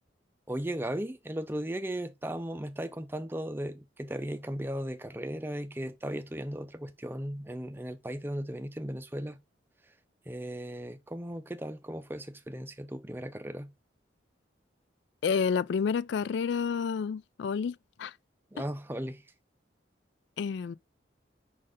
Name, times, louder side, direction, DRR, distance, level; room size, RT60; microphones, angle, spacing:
voice 1, 0.5-9.4 10.3-13.7 18.5-19.2, right 1 dB, 10° right, 0.5 m, -36 dB
voice 2, 15.2-18.2 18.6-18.7 20.4-20.8, left 6 dB, 70° left, 0.3 m, -30 dB
5.3 x 3.9 x 4.9 m
head